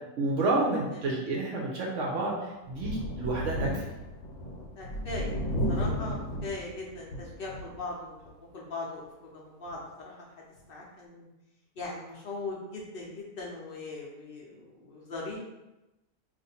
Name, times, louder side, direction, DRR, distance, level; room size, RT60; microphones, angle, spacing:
voice 1, 0.2-2.4 2.7-3.8, right 2 dB, 70° right, -3 dB, 0.9 m, -29 dB
Thunder, 2.7-7.8 8.3-8.4 9.7-9.8, equal, 70° left, 1.0 m, -33 dB
voice 2, 4.8-5.3 5.7-8.1 8.5-9.1 9.3-10.1 10.7-11.3 11.8-15.4, left 3 dB, 55° left, -3 dB, 0.6 m, -39 dB
2.6 x 2.5 x 4.1 m, 1.0 s
omnidirectional pair, 1.4 m